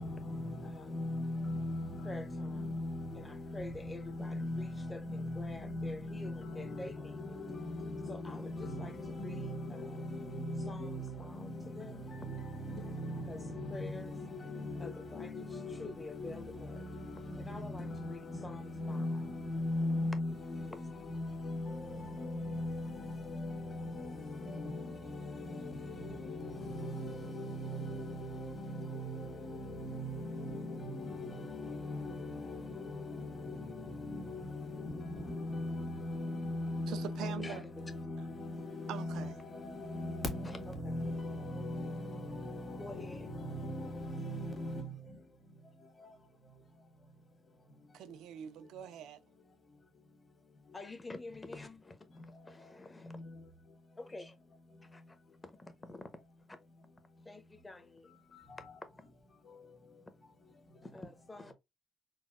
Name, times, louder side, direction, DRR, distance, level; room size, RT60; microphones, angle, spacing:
voice 1, 0.0-45.2 46.0-46.1 51.5-51.7 53.0-53.4 58.3-58.8 59.5-59.6, left 1 dB, 40° left, 1.3 m, -40 dB
voice 2, 0.6-1.1 2.0-2.7 3.1-7.4 8.0-10.1 10.6-12.1 13.3-14.2 14.8-16.9 17.4-19.3 20.6-20.9 37.2-37.9 40.4-41.0 42.8-43.3 50.7-53.2 54.0-54.4 54.7-55.2 55.4-56.1 56.5-56.6 57.2-58.2 58.9-59.0 60.8-61.5, left 2 dB, 20° left, 0.7 m, -48 dB
voice 3, 36.9-37.6 38.9-39.4 47.9-49.2, right 10 dB, 85° right, 0.3 m, -43 dB
4.0 x 2.0 x 2.3 m
cardioid pair, 90°, 0 cm